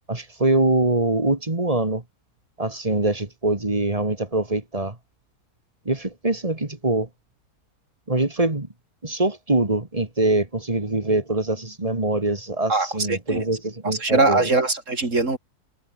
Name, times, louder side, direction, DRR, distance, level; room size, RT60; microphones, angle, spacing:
voice 1, 0.1-2.0 2.6-5.0 5.9-7.1 8.1-8.7 9.0-14.5, right 2 dB, 25° right, 2.4 m, -23 dB
voice 2, 12.7-13.4 13.8-15.4, right 3 dB, 50° right, 3.7 m, -22 dB
omnidirectional pair, 1.6 m